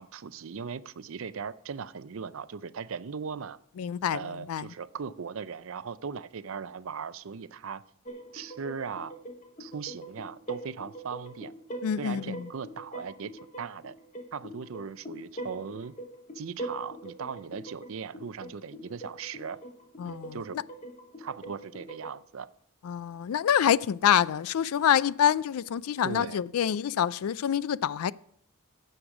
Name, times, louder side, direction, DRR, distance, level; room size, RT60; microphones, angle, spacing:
voice 1, 0.0-3.6 4.1-7.8 8.3-9.1 9.6-11.5 12.0-13.3 13.6-13.9 14.3-15.9 16.3-19.6 20.0-20.6 21.2-22.5 26.0-26.4, right 6 dB, 70° right, 0.5 m, -38 dB
voice 2, 3.8-4.7 11.8-12.4 20.0-20.4 22.8-28.1, left 9 dB, 90° left, 0.4 m, -26 dB
sound 1, 8.0-22.1, right 1 dB, 35° left, 1.1 m, -43 dB
9.9 x 7.9 x 5.9 m
head